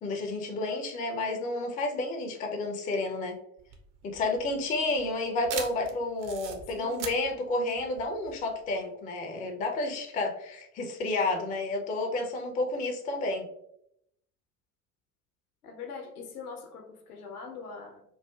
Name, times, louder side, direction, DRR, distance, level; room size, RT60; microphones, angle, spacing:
voice 1, 0.0-3.4 4.0-13.4, left 2 dB, 20° left, 3 dB, 0.4 m, -31 dB
sound 1, 3.6-8.7, right 7 dB, 45° right, 0.6 m, -41 dB
voice 2, 15.6-18.0, left 5 dB, 75° left, 3 dB, 0.7 m, -42 dB
3.2 x 2.4 x 2.2 m, 0.75 s
figure-of-eight pair, 65°, 44 cm